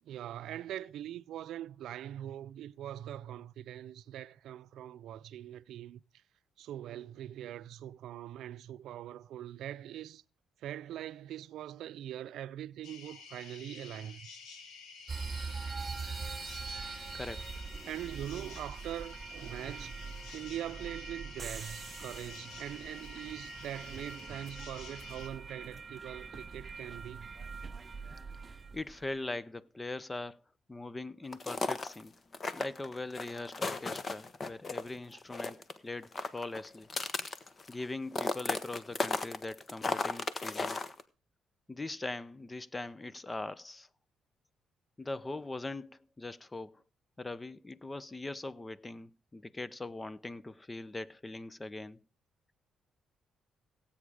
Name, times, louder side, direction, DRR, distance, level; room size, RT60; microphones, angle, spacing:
voice 1, 0.1-6.0 6.6-10.2 10.6-14.2 17.8-20.0 20.3-27.3, right 11 dB, 80° right, 0.5 m, -42 dB
sound 1, 12.8-25.3, left 5 dB, 90° left, 2.1 m, -50 dB
sound 2, 15.1-29.0, right 4 dB, 30° right, 0.6 m, -43 dB
voice 2, 17.1-17.5 28.7-30.4 30.7-32.1 32.5-36.9 37.7-40.8 41.7-43.9 45.0-46.8 47.2-52.0, left 2 dB, 20° left, 0.6 m, -41 dB
sound 3, 31.3-32.0 32.3-34.9 35.1-35.8 36.0-37.8 38.1-41.0, left 3 dB, 35° left, 1.2 m, -35 dB
16.0 x 8.6 x 4.8 m
cardioid pair, 90°, 0 cm